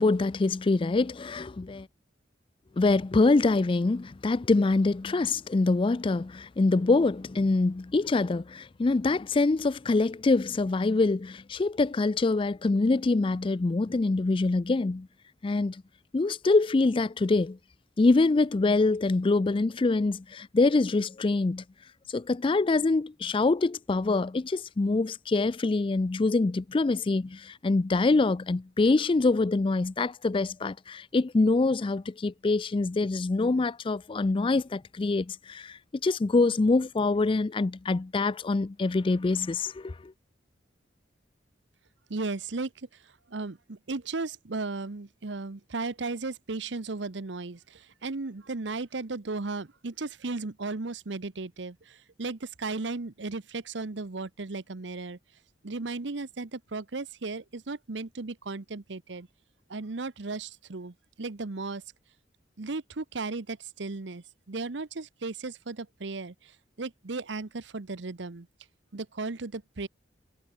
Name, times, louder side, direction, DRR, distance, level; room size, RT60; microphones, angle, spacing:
voice 1, 0.0-1.9 2.8-15.1 15.4-15.8 16.1-17.6 18.0-21.6 22.1-40.1, left 3 dB, 30° left, 0.4 m, -25 dB
voice 2, 42.1-55.2 55.6-59.3 59.7-61.8 62.6-68.5 68.9-69.9, right 3 dB, 70° right, 0.9 m, -35 dB
head